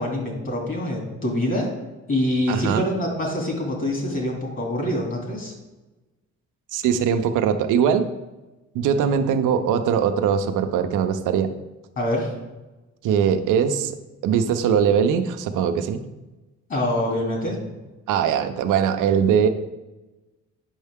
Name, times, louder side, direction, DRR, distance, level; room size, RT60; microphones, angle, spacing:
voice 1, 0.0-1.7 2.1-5.5 12.0-12.3 16.7-17.6, left 1 dB, 40° left, 0 dB, 2.5 m, -25 dB
voice 2, 2.5-2.8 6.7-8.1 8.7-11.5 13.0-14.0 14.2-16.0 18.1-19.5, right 7 dB, 85° right, 7 dB, 0.7 m, -21 dB
8.9 x 5.5 x 3.6 m, 1.1 s
cardioid pair, 90°, 30 cm